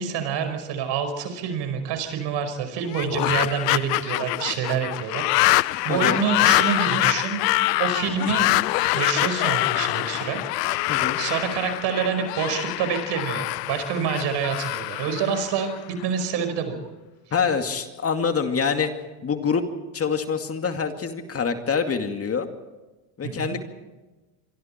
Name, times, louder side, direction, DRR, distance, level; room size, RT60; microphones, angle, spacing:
voice 1, 0.0-7.4 7.8-8.5 8.9-10.8 11.1-16.8 23.2-23.6, right 7 dB, 60° right, 8 dB, 5.3 m, -27 dB
sound 1, 2.9-16.0, left 21 dB, 80° left, 0.7 m, -24 dB
voice 2, 5.9-6.2 10.9-11.2 17.3-18.9 19.2-19.6 19.9-22.5 23.2-23.6, left 6 dB, 30° left, 6 dB, 2.3 m, -25 dB
25.5 x 24.5 x 4.5 m, 1.1 s
hypercardioid pair, 90°, 48 cm